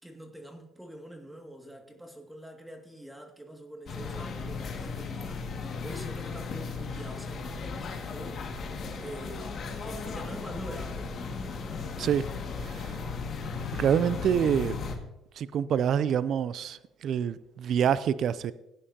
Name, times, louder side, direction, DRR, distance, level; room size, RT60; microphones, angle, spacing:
voice 1, 0.0-8.5 9.0-12.4, right 1 dB, 5° right, 2.1 m, -45 dB
sound 1, 3.9-15.0, left 4 dB, 50° left, 1.9 m, -36 dB
voice 2, 12.6-13.0 13.8-14.8 15.4-18.5, right 8 dB, 60° right, 0.4 m, -26 dB
17.0 x 9.8 x 2.8 m
supercardioid pair, 70°, 0 cm